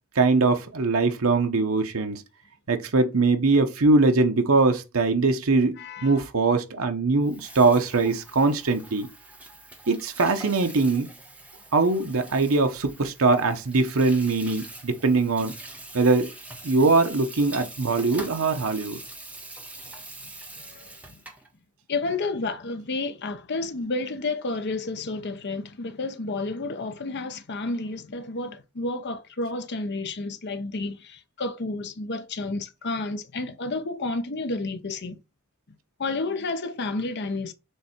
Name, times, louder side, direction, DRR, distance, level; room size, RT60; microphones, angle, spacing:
voice 1, 0.1-2.2 2.7-9.1 9.9-11.1 11.7-15.5 15.9-16.3 16.6-19.0, right 3 dB, 75° right, 0.9 m, -22 dB
voice 2, 5.8-6.2 20.2-20.3 20.6-21.2 21.9-35.2 36.0-37.5, left 3 dB, 55° left, 0.8 m, -31 dB
Water tap faucet / Sink (filling or washing), 7.2-21.5, right 2 dB, 5° right, 1.1 m, -44 dB
6.6 x 3.3 x 4.4 m
head